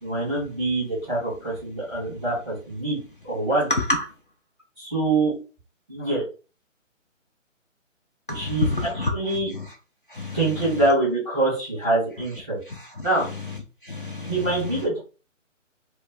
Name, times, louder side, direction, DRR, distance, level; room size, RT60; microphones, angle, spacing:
voice 1, 0.0-3.0 3.2-3.7 4.8-5.3 5.9-6.2 8.3-9.5 10.3-12.6 13.0-13.3 14.3-15.0, right 2 dB, ahead, 0.7 m, -25 dB
voice 2, 3.7-4.0 8.3-9.1 9.5-9.7 10.1-10.4 12.7-13.1 13.8-14.3, left 2 dB, 45° left, 0.4 m, -27 dB
2.2 x 2.1 x 3.6 m
figure-of-eight pair, 145°, 39 cm